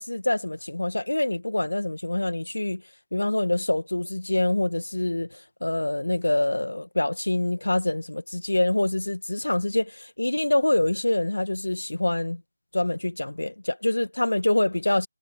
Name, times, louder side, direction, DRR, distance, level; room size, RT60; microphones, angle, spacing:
voice 1, 0.0-2.8 3.1-12.4 12.7-15.1, left 1 dB, 90° left, 1.7 m, -25 dB
figure-of-eight pair, 165°, 0 cm